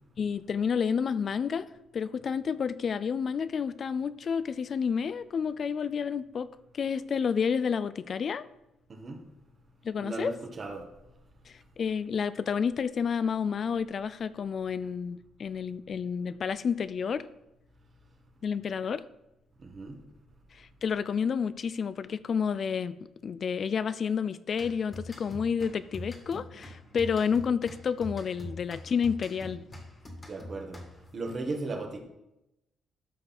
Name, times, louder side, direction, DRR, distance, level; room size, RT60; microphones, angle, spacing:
voice 1, 0.2-1.7 1.9-6.5 6.7-8.5 9.8-10.3 11.5-17.3 18.4-19.0 20.5-29.6, left 6 dB, 50° left, 15 dB, 0.4 m, -30 dB
voice 2, 10.0-10.8 19.6-19.9 30.2-30.8 31.1-32.0, right 3 dB, 40° right, 3 dB, 1.7 m, -36 dB
sound 1, 24.5-31.2, left 1 dB, 25° left, 2.2 m, -44 dB
12.5 x 5.3 x 4.3 m, 0.90 s
cardioid pair, 90°, 0 cm